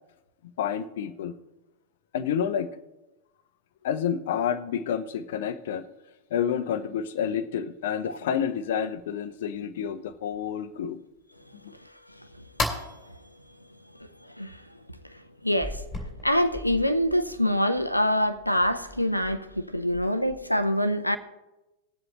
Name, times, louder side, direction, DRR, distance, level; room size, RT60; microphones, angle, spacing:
voice 1, 0.6-1.3 2.1-2.8 3.8-5.9 6.3-11.0 11.6-11.7, left 8 dB, 55° left, 0.7 m, -29 dB
sound 1, 8.1-8.5 9.0-9.1 9.5-9.6 10.1-10.8 11.2-11.3 11.8-11.9 12.3-13.5 14.0-14.1 14.6-14.7 15.1-15.2 15.6-20.6, left 2 dB, 15° left, 2.8 m, -38 dB
voice 2, 15.4-15.8 16.2-21.2, equal, 90° left, 0.7 m, -25 dB
19.5 x 7.8 x 3.0 m
figure-of-eight pair, 90°, 0 cm